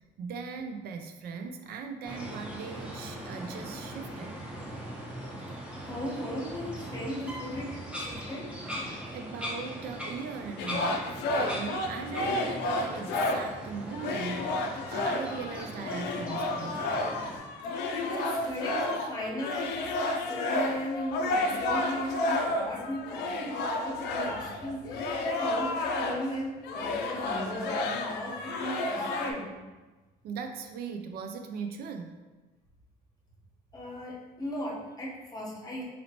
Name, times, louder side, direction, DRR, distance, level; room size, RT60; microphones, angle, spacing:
voice 1, 0.2-4.4 9.1-16.8 30.2-32.2, right 5 dB, 65° right, 6 dB, 0.4 m, -39 dB
sound 1, 2.0-17.4, equal, 5° right, 0.8 m, -40 dB
voice 2, 5.8-8.5 17.9-29.4 33.7-35.8, equal, 20° left, -3 dB, 1.0 m, -36 dB
sound 2, 10.6-13.6 13.9-26.3 26.6-29.3, left 2 dB, 85° left, 0.4 m, -31 dB
4.1 x 2.9 x 2.8 m, 1.2 s
cardioid pair, 110°, 17 cm